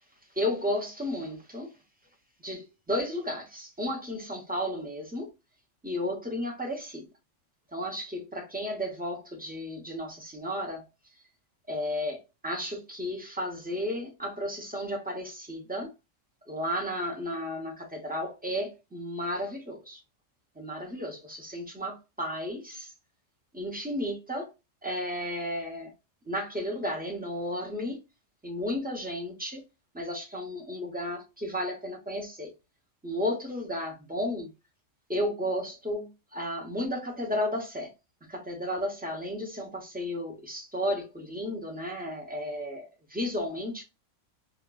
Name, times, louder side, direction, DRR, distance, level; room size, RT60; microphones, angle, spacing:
voice 1, 0.4-1.7 2.4-5.3 5.8-7.1 7.7-10.9 11.7-15.9 16.5-20.0 20.6-22.9 23.5-24.5 24.8-25.9 26.3-28.0 28.4-29.6 29.9-32.5 33.0-34.5 35.1-37.9 38.3-43.8, left 1 dB, 10° right, 0.5 m, -33 dB
3.7 x 2.3 x 2.2 m
omnidirectional pair, 1.3 m